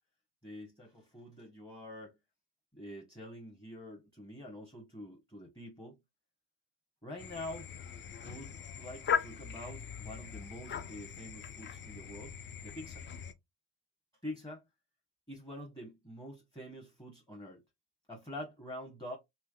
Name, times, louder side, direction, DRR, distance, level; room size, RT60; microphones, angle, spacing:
voice 1, 0.4-2.1 2.7-6.0 7.0-7.7 8.2-12.3 12.6-13.0 14.2-14.6 15.3-17.6 18.1-19.2, left 1 dB, 10° left, 0.9 m, -46 dB
sound 1, 7.2-13.3, left 7 dB, 30° left, 0.4 m, -39 dB
3.3 x 3.0 x 2.2 m
cardioid pair, 90°, 37 cm